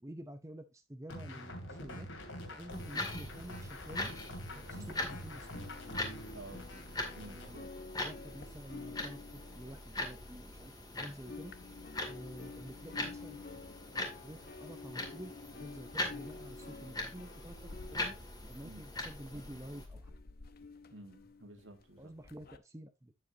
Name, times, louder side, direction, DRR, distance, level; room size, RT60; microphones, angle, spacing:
voice 1, 0.0-2.1 2.5-4.1 4.5-5.7 7.3-7.7 8.0-11.5 12.1-18.2 18.4-20.1 22.0-23.1, right 1 dB, 15° right, 0.7 m, -49 dB
sound 1, 1.1-7.5, left 1 dB, 70° left, 2.7 m, -46 dB
sound 2, 2.7-19.9, left 2 dB, 20° left, 2.2 m, -42 dB
sound 3, 5.5-10.9 11.1-22.6, left 3 dB, 50° left, 0.8 m, -51 dB
voice 2, 6.3-6.7 7.1-7.8 18.6-18.8 20.9-22.1, right 2 dB, 65° right, 1.6 m, -52 dB
9.5 x 7.6 x 2.8 m
head